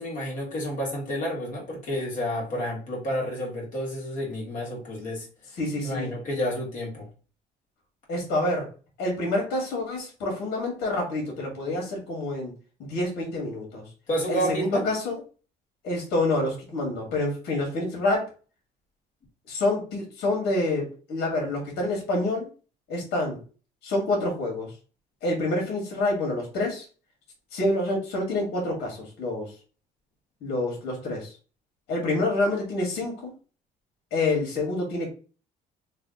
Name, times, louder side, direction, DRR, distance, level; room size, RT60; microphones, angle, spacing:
voice 1, 0.0-5.3 5.8-7.1 14.1-14.9, equal, 50° left, -3 dB, 1.7 m, -30 dB
voice 2, 5.6-6.1 8.1-8.7 9.0-12.5 12.8-13.8 14.3-15.2 15.8-18.3 19.5-22.5 22.9-23.4 23.8-24.7 25.2-26.9 27.5-29.5 30.4-31.3 31.9-33.3 34.1-35.1, left 2 dB, 75° left, 0 dB, 1.7 m, -27 dB
3.3 x 2.4 x 3.7 m, 0.36 s
cardioid pair, 110°, 17 cm